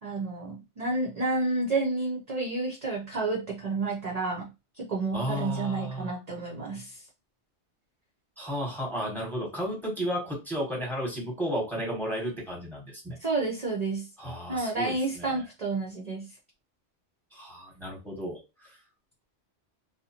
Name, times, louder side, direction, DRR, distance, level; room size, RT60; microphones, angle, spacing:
voice 1, 0.0-4.5 4.8-7.0 13.2-14.1 14.5-16.3, right 3 dB, 45° right, -2 dB, 0.5 m, -30 dB
voice 2, 5.1-6.2 8.4-13.2 14.2-15.4 17.3-18.7, equal, ahead, -2 dB, 1.0 m, -33 dB
2.5 x 2.0 x 2.8 m, 0.26 s
omnidirectional pair, 1.1 m